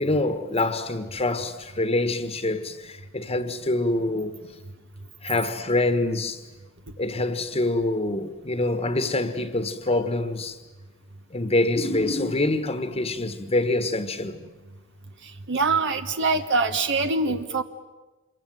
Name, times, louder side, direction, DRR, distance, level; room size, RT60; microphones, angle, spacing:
voice 1, 0.0-4.4 5.2-6.4 7.0-10.6 11.3-14.4, left 2 dB, 30° left, 1.5 m, -25 dB
voice 2, 15.5-17.6, right 3 dB, 60° right, 1.4 m, -23 dB
27.0 x 23.5 x 9.5 m
head